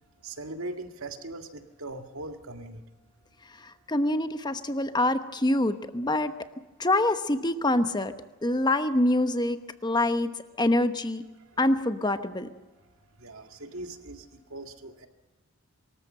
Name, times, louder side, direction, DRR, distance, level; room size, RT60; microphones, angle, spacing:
voice 1, 0.2-2.8 13.2-15.1, right 2 dB, 70° right, 6 dB, 1.9 m, -40 dB
voice 2, 3.9-6.3 6.8-8.1 8.4-10.3 10.6-11.2 11.6-12.5, left 1 dB, 20° left, 10 dB, 1.0 m, -25 dB
24.5 x 14.0 x 7.8 m, 1.2 s
head